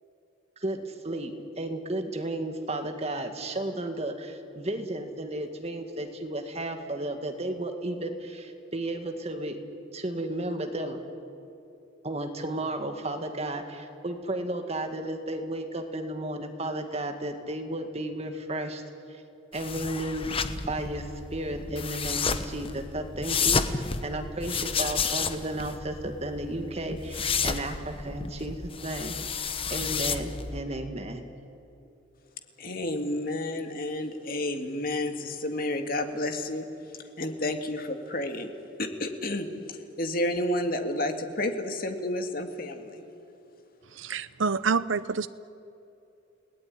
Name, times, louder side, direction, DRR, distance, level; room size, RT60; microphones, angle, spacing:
voice 1, 0.6-9.6 9.9-11.0 12.0-18.8 19.5-20.3 20.7-21.1 21.3-29.2 29.7-31.2, right 1 dB, 35° right, 5 dB, 2.0 m, -33 dB
sound 1, 19.5-30.6, left 5 dB, 30° left, 1.0 m, -31 dB
voice 2, 32.6-36.7 37.2-38.5 38.8-39.5 40.0-43.0, left 1 dB, 50° left, 5 dB, 2.1 m, -30 dB
voice 3, 43.9-45.3, right 5 dB, 80° right, 15 dB, 0.7 m, -27 dB
30.0 x 18.5 x 9.7 m, 2.8 s
head